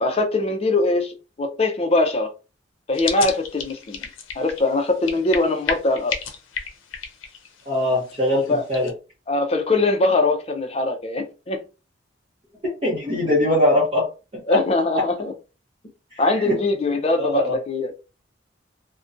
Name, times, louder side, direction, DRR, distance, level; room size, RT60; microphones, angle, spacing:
voice 1, 0.0-2.3 2.9-4.1 4.4-6.2 8.5-8.6 9.3-11.6 14.5-15.3 16.2-18.0, left 2 dB, 30° left, 0.5 m, -22 dB
sound 1, 2.9-8.9, left 6 dB, 85° left, 0.5 m, -33 dB
voice 2, 7.7-8.9 12.6-14.1 14.5-14.6 16.4-16.6 17.2-17.5, left 1 dB, 30° right, 0.7 m, -21 dB
2.5 x 2.1 x 2.5 m
head